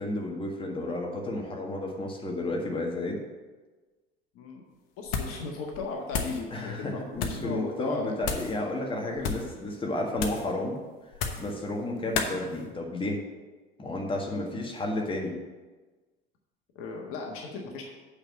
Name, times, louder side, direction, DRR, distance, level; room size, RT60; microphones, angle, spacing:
voice 1, 0.0-3.2 6.5-10.8 11.4-13.2 13.8-15.3, left 1 dB, 15° left, 0 dB, 1.7 m, -32 dB
voice 2, 4.3-4.7 5.0-7.0 7.3-8.1 9.0-9.2 14.3-14.5 16.7-17.9, left 4 dB, 45° left, 1 dB, 1.5 m, -36 dB
sound 1, 5.1-5.5 5.7-6.4 7.1-7.5 8.2-8.6 9.1-9.5 10.2-10.5 11.1-11.5 12.1-12.4, left 5 dB, 65° left, 1.1 m, -32 dB
8.7 x 4.9 x 7.2 m, 1.3 s
figure-of-eight pair, 65°, 30 cm